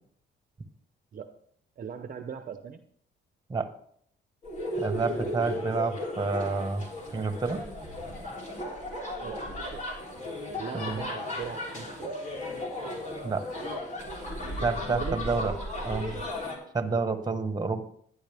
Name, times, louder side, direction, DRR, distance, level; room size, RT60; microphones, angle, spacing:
voice 1, 1.8-2.8 9.2-9.8 10.6-12.2 14.9-15.2 15.7-15.9, right 6 dB, 45° right, 8 dB, 0.8 m, -39 dB
sound 1, 4.4-16.6, left 1 dB, 35° left, 3.3 m, -35 dB
voice 2, 4.8-6.8 7.1-7.6 10.7-11.0 13.2-13.4 14.6-15.5 15.8-16.2 16.7-17.8, right 4 dB, 20° right, 7 dB, 1.3 m, -29 dB
11.5 x 9.8 x 3.5 m, 0.65 s
cardioid pair, 90°, 20 cm